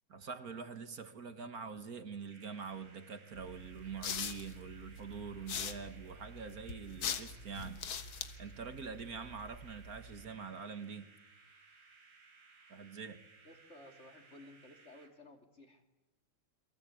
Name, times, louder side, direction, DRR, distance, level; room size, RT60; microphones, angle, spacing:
voice 1, 0.1-7.9 8.4-11.1 12.7-13.3, right 6 dB, 45° right, 10 dB, 1.9 m, -45 dB
sound 1, 2.3-15.1, right 4 dB, 85° right, 4.2 m, -62 dB
sound 2, 3.3-10.3, left 6 dB, 65° left, 2.1 m, -43 dB
voice 2, 13.4-15.8, left 1 dB, 30° left, 5 dB, 3.1 m, -56 dB
29.0 x 23.5 x 8.5 m, 1.0 s
omnidirectional pair, 2.4 m